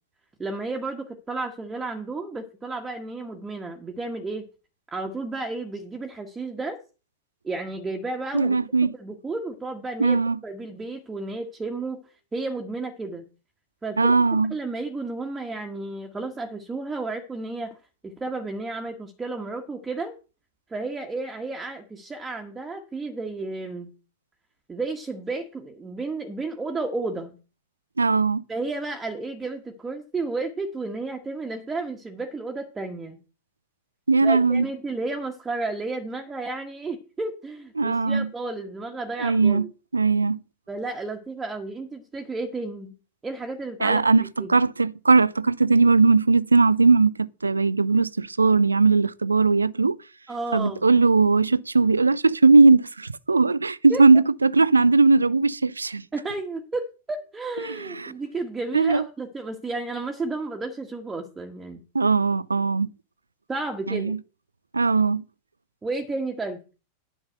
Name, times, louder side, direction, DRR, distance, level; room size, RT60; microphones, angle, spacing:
voice 1, 0.4-4.5 4.9-6.8 7.4-8.6 9.0-13.3 13.8-14.1 14.5-17.8 18.0-20.1 20.7-23.9 24.7-27.3 28.5-33.2 34.2-39.7 40.7-42.9 43.2-44.5 50.3-50.9 53.9-54.0 56.1-61.8 63.5-64.1 65.8-66.6, right 3 dB, 15° right, 1.6 m, -32 dB
voice 2, 8.3-8.9 10.0-10.4 14.0-14.5 28.0-28.4 34.1-34.7 37.8-38.3 39.2-39.7 39.9-40.4 43.8-50.0 50.5-56.0 57.6-58.1 58.7-59.0 61.9-62.9 63.9-64.2 64.7-65.2, right 3 dB, 80° right, 0.5 m, -19 dB
10.0 x 5.6 x 7.9 m
figure-of-eight pair, 90°, 0 cm